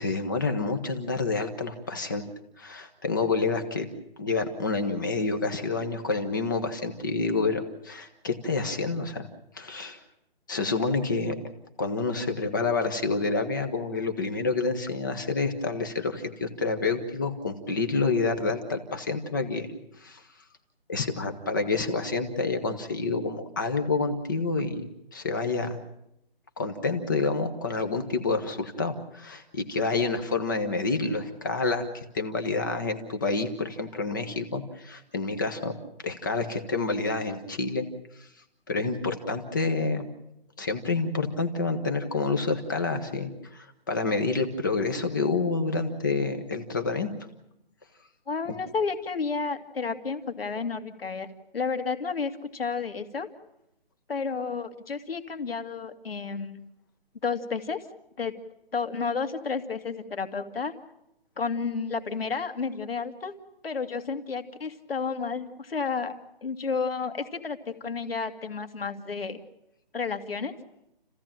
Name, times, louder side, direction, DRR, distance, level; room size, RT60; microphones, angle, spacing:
voice 1, 0.0-2.3 2.6-3.8 4.2-9.3 9.5-10.0 10.5-11.3 11.8-19.7 20.0-20.2 20.9-24.8 25.1-25.8 26.6-35.7 36.0-37.9 38.2-38.3 38.7-40.1 40.6-47.1, left 3 dB, 20° left, 7 dB, 1.2 m, -28 dB
voice 2, 48.3-51.3 51.5-53.3 54.1-56.6 57.2-57.8 58.2-58.3 58.7-60.7 61.4-63.3 63.6-66.1 66.4-69.4 69.9-70.5, left 5 dB, 70° left, 7 dB, 2.5 m, -31 dB
29.5 x 15.5 x 8.9 m, 0.82 s
hypercardioid pair, 175°, 30 cm